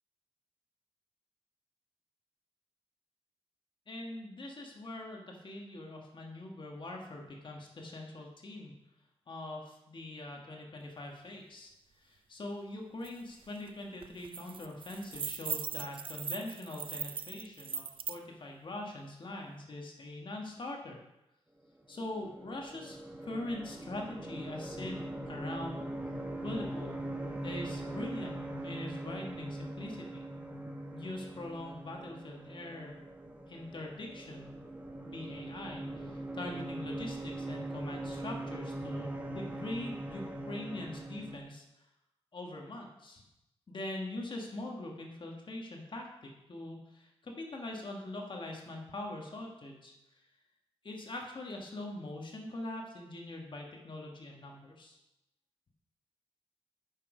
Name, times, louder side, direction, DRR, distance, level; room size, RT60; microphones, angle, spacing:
voice 1, 3.9-8.8 9.3-21.0 21.9-25.9 26.4-27.0 27.4-28.4 28.6-30.2 30.9-33.0 33.5-34.5 35.0-41.9 42.3-43.2 43.7-50.3 50.8-55.0, left 1 dB, 50° left, 0 dB, 1.6 m, -42 dB
sound 1, 13.0-13.1 13.5-13.7 14.0-18.2, right 7 dB, 55° right, 0.4 m, -39 dB
sound 2, 21.9-41.4, right 1 dB, 15° right, 1.2 m, -41 dB
8.8 x 6.4 x 5.0 m, 0.88 s
wide cardioid pair, 100°, 10 cm